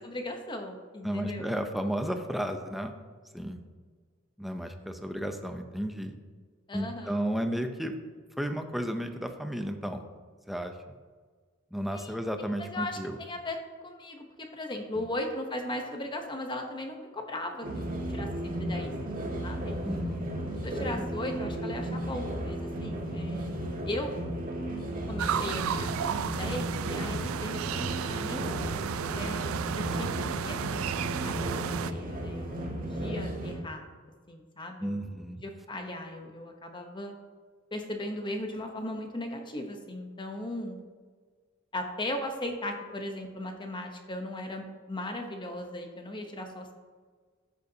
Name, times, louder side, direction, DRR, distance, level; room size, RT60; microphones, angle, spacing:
voice 1, 0.0-1.5 6.7-7.2 11.9-12.1 12.6-13.6 13.8-17.8 18.1-18.9 19.4-19.8 20.6-23.5 23.8-24.2 25.1-28.5 29.1-33.8 34.3-37.1 37.7-40.8 41.7-46.7, left 1 dB, 25° left, 4 dB, 0.9 m, -37 dB
voice 2, 1.0-2.9 3.3-3.6 4.4-6.1 6.7-7.9 8.4-10.0 10.5-10.7 11.7-13.2 19.8-20.3 20.9-21.0 34.8-35.4, equal, ahead, 6 dB, 0.6 m, -33 dB
sound 1, 17.6-33.5, equal, 45° right, 1.8 m, -34 dB
sound 2, 25.2-31.9, right 8 dB, 85° right, 0.4 m, -33 dB
13.0 x 6.7 x 2.8 m, 1.5 s
head